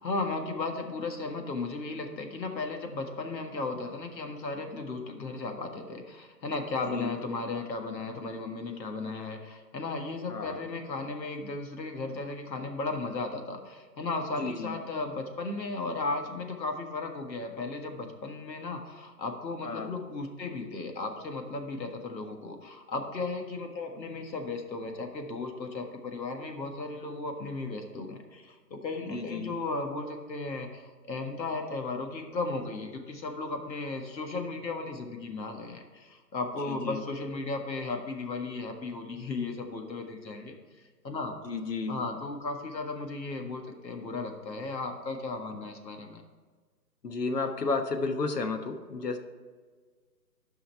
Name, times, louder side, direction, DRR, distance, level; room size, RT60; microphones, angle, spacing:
voice 1, 0.0-40.5 41.0-41.3 41.9-46.2, left 3 dB, 85° left, 4 dB, 1.8 m, -35 dB
voice 2, 10.3-10.6 14.4-14.7 19.6-19.9 29.1-29.5 36.7-37.0 41.4-42.0 47.0-49.2, left 3 dB, 70° left, 7 dB, 1.2 m, -32 dB
11.0 x 5.6 x 4.4 m, 1.5 s
hypercardioid pair, 180°, 50 cm